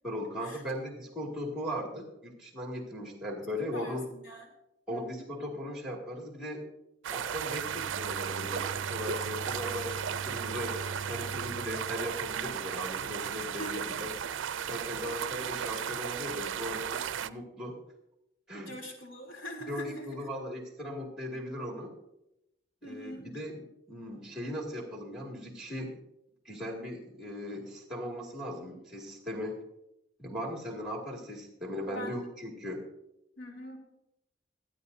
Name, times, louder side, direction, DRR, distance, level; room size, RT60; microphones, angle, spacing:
voice 1, 0.0-4.0 4.9-6.7 7.1-14.1 14.7-17.8 18.5-18.7 19.7-21.9 22.8-26.0 26.4-29.6 30.2-32.8, equal, 5° right, -1 dB, 2.3 m, -38 dB
voice 2, 3.7-4.5 4.9-5.3 13.6-13.8 14.8-15.1 18.5-20.3 22.8-23.2 31.9-32.3 33.4-33.8, equal, 85° left, 1 dB, 3.2 m, -43 dB
sound 1, 7.0-17.3, right 8 dB, 80° right, 0.4 m, -35 dB
Bowed string instrument, 7.3-13.3, right 4 dB, 15° left, 5.2 m, -44 dB
24.5 x 9.2 x 2.7 m, 0.85 s
head